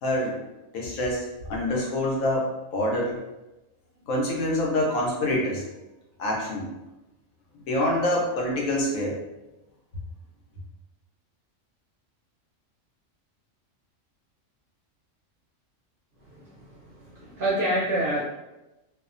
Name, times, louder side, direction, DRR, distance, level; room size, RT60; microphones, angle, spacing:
voice 1, 0.0-0.3 0.7-3.2 4.1-5.6 6.2-6.7 7.7-9.2, left 1 dB, 85° left, -2 dB, 1.1 m, -26 dB
voice 2, 16.2-18.2, right 1 dB, 60° right, -6 dB, 0.6 m, -28 dB
2.7 x 2.1 x 2.5 m, 1.0 s
omnidirectional pair, 1.4 m